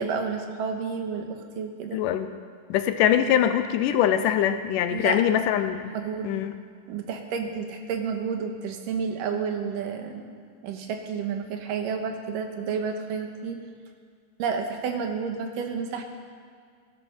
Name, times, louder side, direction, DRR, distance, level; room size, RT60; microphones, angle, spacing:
voice 1, 0.0-2.0 4.9-5.2 5.9-6.3 6.9-10.2 10.6-13.6 14.4-16.0, right 6 dB, 75° right, 5 dB, 2.8 m, -30 dB
voice 2, 1.9-2.3 2.7-6.0 6.2-6.6, left 10 dB, 85° left, 9 dB, 2.2 m, -23 dB
18.0 x 11.5 x 6.1 m, 2.1 s
omnidirectional pair, 3.9 m